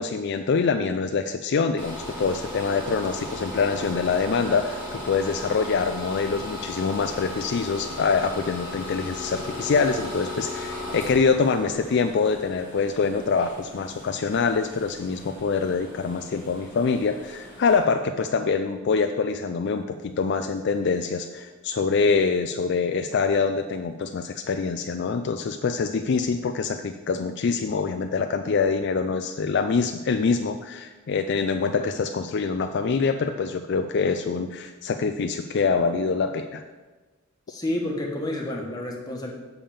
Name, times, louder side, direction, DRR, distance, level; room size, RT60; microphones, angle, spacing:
voice 1, 0.0-36.6, left 5 dB, 55° left, 7 dB, 0.4 m, -25 dB
sound 1, 1.8-17.8, left 1 dB, 25° right, 3.0 m, -37 dB
voice 2, 37.5-39.3, left 1 dB, 20° left, -1 dB, 1.4 m, -29 dB
6.9 x 5.5 x 7.1 m, 1.3 s
head